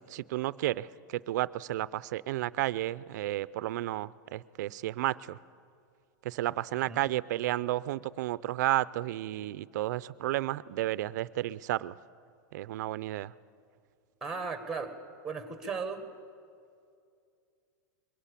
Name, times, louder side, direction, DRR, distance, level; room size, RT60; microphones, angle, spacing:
voice 1, 0.1-5.4 6.2-12.0 12.5-13.3, right 15 dB, 65° right, 18 dB, 0.5 m, -32 dB
voice 2, 14.2-14.9 15.2-16.0, right 5 dB, 5° right, 8 dB, 1.6 m, -36 dB
22.0 x 17.5 x 8.4 m, 2.4 s
supercardioid pair, 160°, 10 cm